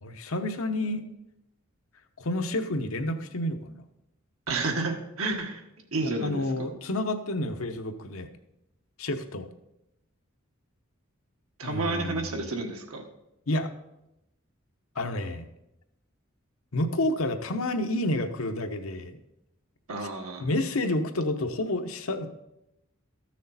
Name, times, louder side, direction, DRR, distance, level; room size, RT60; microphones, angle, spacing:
voice 1, 0.0-1.0 2.2-3.8 6.2-8.3 9.0-9.5 11.6-12.3 13.5-13.7 15.0-15.5 16.7-19.2 20.4-22.3, left 1 dB, 80° left, 6 dB, 0.9 m, -29 dB
voice 2, 4.5-5.6 5.9-6.7 11.6-13.0 19.9-20.5, right 3 dB, 90° right, 2 dB, 1.5 m, -31 dB
13.5 x 6.4 x 4.1 m, 0.88 s
head